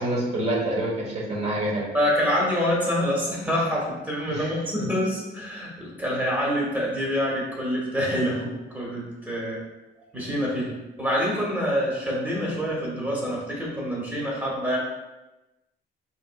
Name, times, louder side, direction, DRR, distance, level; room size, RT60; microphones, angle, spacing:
voice 1, 0.0-1.8 4.3-4.5 4.8-4.9, right 1 dB, 35° right, -3 dB, 1.1 m, -27 dB
voice 2, 1.9-9.6 10.1-14.8, equal, 10° right, -4 dB, 1.1 m, -26 dB
4.3 x 3.6 x 2.2 m, 1.0 s
cardioid pair, 145°, 18 cm